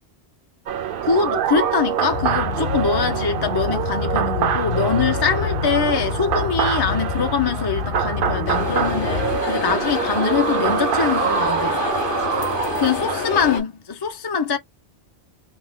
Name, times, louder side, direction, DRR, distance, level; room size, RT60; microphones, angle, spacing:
sound 1, 0.7-13.6, right 9 dB, 60° right, 0.7 m, -25 dB
voice 1, 1.0-11.8 12.8-14.6, left 6 dB, 30° left, 0.5 m, -23 dB
sound 2, 2.1-9.4, left 7 dB, 70° left, 1.0 m, -28 dB
sound 3, 8.5-13.6, left 5 dB, 55° left, 1.2 m, -27 dB
3.3 x 2.8 x 2.2 m
omnidirectional pair, 1.1 m